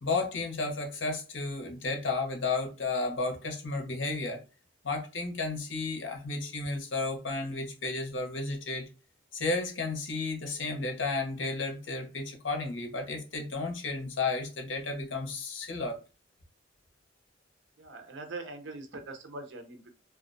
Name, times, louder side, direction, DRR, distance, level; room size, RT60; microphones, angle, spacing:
voice 1, 0.0-4.4 4.8-8.9 9.3-16.0, left 3 dB, 85° left, 0.7 m, -33 dB
voice 2, 17.8-19.9, right 3 dB, 75° right, 0.6 m, -42 dB
2.4 x 2.1 x 2.4 m
head